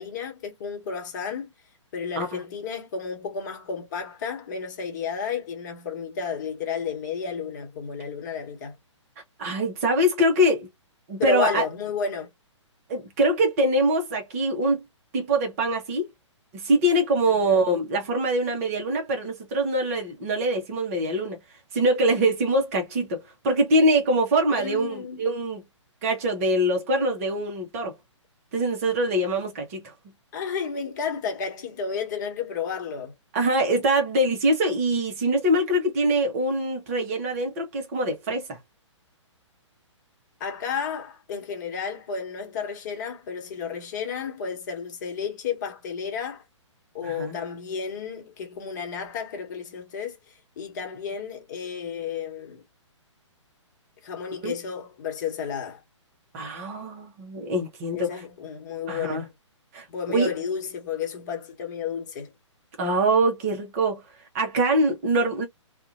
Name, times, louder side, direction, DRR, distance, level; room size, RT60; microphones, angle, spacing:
voice 1, 0.0-1.5 1.9-8.7 11.2-12.3 17.3-17.7 24.6-25.2 30.3-33.1 40.4-46.4 46.9-52.6 54.0-55.8 57.9-59.3 59.9-62.3, left 6 dB, 35° left, 1.2 m, -32 dB
voice 2, 9.4-10.7 11.1-11.6 12.9-14.8 15.1-16.1 16.5-21.4 21.7-25.6 26.0-27.9 28.5-29.9 33.3-38.6 47.0-47.4 54.4-54.5 56.3-58.1 58.9-59.2 59.7-59.9 60.1-60.3 62.8-64.0 64.3-65.5, right 1 dB, 30° right, 1.0 m, -23 dB
2.7 x 2.5 x 2.6 m
figure-of-eight pair, 125°, 16 cm